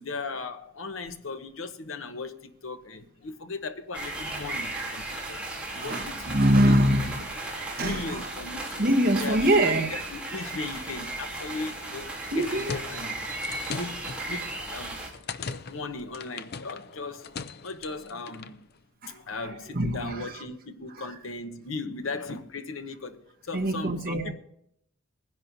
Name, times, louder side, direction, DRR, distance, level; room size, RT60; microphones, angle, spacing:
voice 1, 0.0-5.4 5.7-6.4 6.7-6.8 7.5-13.3 13.7-15.0 15.6-17.3 17.6-18.7 19.1-24.3, left 3 dB, 75° left, 1.0 m, -37 dB
sound 1, 3.9-15.1, right 2 dB, 5° right, 3.0 m, -36 dB
voice 2, 5.8-8.2 8.8-10.0 12.3-12.7 19.0-19.1 19.7-20.3 23.5-24.3, right 1 dB, 50° right, 1.3 m, -24 dB
sound 2, 12.2-18.6, left 5 dB, 50° left, 0.5 m, -40 dB
20.5 x 10.5 x 2.7 m
head